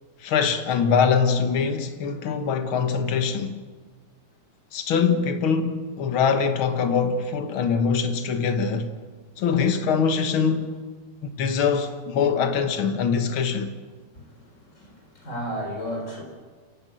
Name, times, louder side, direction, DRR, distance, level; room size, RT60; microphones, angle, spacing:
voice 1, 0.2-3.6 4.7-8.9 9.4-10.7 11.2-13.7, left 6 dB, 65° left, 1.2 m, -23 dB
voice 2, 14.1-16.2, equal, 20° left, 4.5 m, -34 dB
29.0 x 12.0 x 9.2 m
omnidirectional pair, 4.4 m